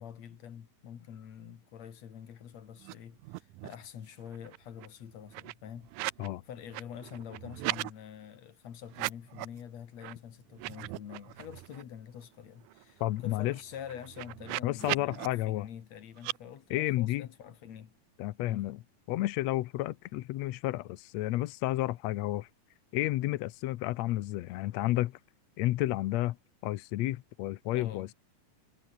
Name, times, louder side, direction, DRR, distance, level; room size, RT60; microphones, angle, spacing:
voice 1, 0.0-5.9 6.5-17.9 18.4-18.7 27.6-28.1, left 9 dB, 55° left, 3.0 m, -46 dB
sound 1, 2.8-2.9 3.2-3.9 4.2-6.3 6.6-7.9 8.9-9.6 10.0-10.1 10.5-11.8 12.2-12.3 12.6-15.3 16.2-16.4, right 21 dB, 85° right, 1.8 m, -39 dB
voice 2, 13.0-13.6 14.6-15.7 16.7-17.3 18.2-18.8 19.1-22.5 22.9-25.2 25.6-26.4 26.6-28.1, left 16 dB, 75° left, 1.6 m, -31 dB
omnidirectional pair, 3.9 m